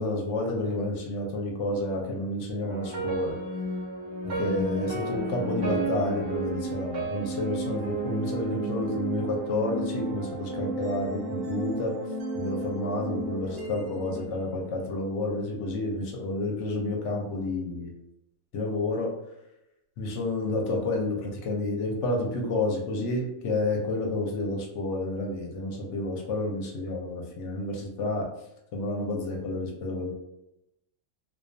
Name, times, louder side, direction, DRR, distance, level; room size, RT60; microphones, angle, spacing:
voice 1, 0.0-3.4 4.2-12.0 12.4-17.9 18.5-19.1 20.0-28.3 28.7-30.1, left 2 dB, 65° left, 0 dB, 0.8 m, -30 dB
sound 1, 2.6-14.9, right 2 dB, 65° right, 0.6 m, -33 dB
2.3 x 2.3 x 2.6 m, 0.88 s
omnidirectional pair, 1.5 m